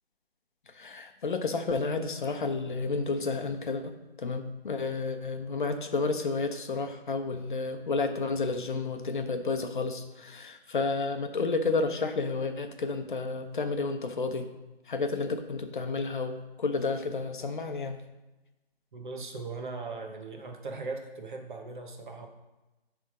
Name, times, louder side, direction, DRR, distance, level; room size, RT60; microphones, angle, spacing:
voice 1, 0.8-3.9 4.2-14.5 14.9-18.0, left 3 dB, 50° left, 6 dB, 0.8 m, -31 dB
voice 2, 18.9-22.3, right 3 dB, 50° right, 4 dB, 1.1 m, -39 dB
10.5 x 3.5 x 4.9 m, 1.1 s
hypercardioid pair, 165°, 32 cm